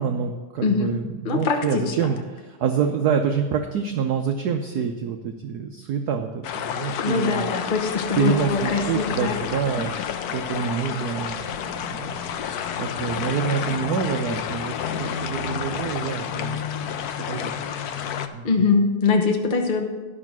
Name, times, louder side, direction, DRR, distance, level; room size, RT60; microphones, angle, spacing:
voice 1, 0.0-7.4 8.2-11.6 11.9-12.1 12.8-16.6 16.9-17.5 18.3-18.5, right 7 dB, 70° right, 5 dB, 0.9 m, -27 dB
voice 2, 0.6-0.9 1.2-1.9 7.0-9.4 18.4-19.8, left 4 dB, 35° left, 3 dB, 0.8 m, -22 dB
sound 1, 6.4-18.3, left 8 dB, 85° left, 0.8 m, -30 dB
11.0 x 6.4 x 6.0 m, 1.3 s
omnidirectional pair, 2.3 m